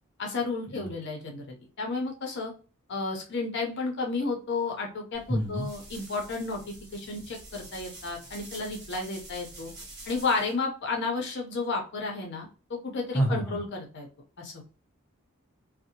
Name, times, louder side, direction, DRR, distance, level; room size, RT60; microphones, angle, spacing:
voice 1, 0.2-2.5 2.9-9.7 10.1-14.1 14.4-14.6, left 3 dB, 50° left, 1 dB, 0.6 m, -32 dB
sound 1, 5.1-10.5, right 2 dB, 50° right, 1.2 m, -47 dB
voice 2, 5.3-5.7 13.1-13.6, right 1 dB, 10° left, -3 dB, 0.7 m, -28 dB
2.6 x 2.0 x 2.8 m, 0.36 s
head